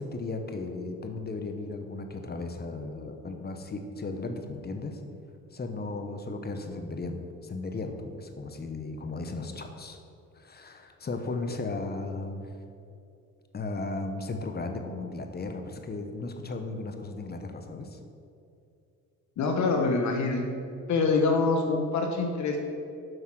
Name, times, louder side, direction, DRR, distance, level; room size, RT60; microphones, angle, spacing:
voice 1, 0.0-5.0 5.5-10.0 10.3-12.5 13.5-18.0, left 3 dB, 30° left, 5 dB, 1.0 m, -36 dB
voice 2, 19.4-20.5 20.9-22.6, left 3 dB, 70° left, 3 dB, 1.0 m, -25 dB
7.9 x 5.7 x 6.0 m, 2.6 s
cardioid pair, 90°, 30 cm